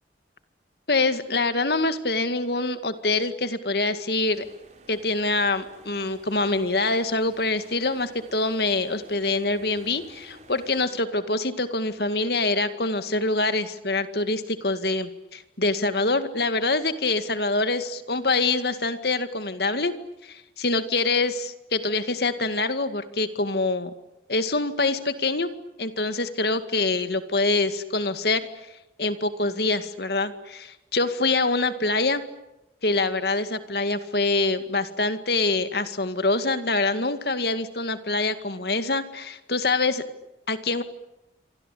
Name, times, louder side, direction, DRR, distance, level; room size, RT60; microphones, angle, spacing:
voice 1, 0.9-4.4 4.9-19.9 20.2-23.9 24.3-25.5 25.8-28.5 29.0-32.2 32.8-40.0 40.5-40.8, left 3 dB, 60° left, 10 dB, 2.1 m, -25 dB
sound 1, 4.2-10.9, right 1 dB, 40° right, 4.4 m, -51 dB
27.5 x 25.0 x 8.5 m, 0.92 s
head